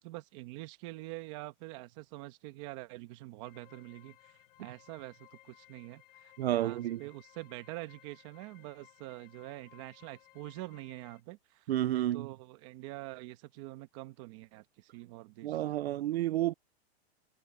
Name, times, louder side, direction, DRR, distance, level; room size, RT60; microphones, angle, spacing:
voice 1, 0.0-15.7, right 19 dB, 30° right, 1.5 m, -46 dB
sound 1, 3.4-11.2, left 16 dB, 50° left, 7.9 m, -61 dB
voice 2, 6.4-7.0 11.7-12.3 15.4-16.5, right 13 dB, 75° right, 0.7 m, -30 dB
supercardioid pair, 175°, 32 cm